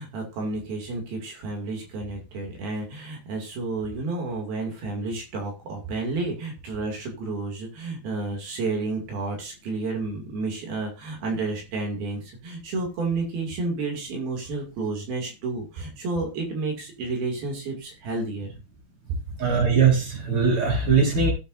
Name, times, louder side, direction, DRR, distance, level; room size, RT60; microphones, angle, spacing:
voice 1, 0.0-18.5, right 3 dB, 80° right, 1 dB, 4.3 m, -31 dB
voice 2, 19.4-21.3, right 5 dB, 35° right, -1 dB, 4.9 m, -20 dB
17.5 x 7.7 x 2.6 m, 0.29 s
omnidirectional pair, 4.2 m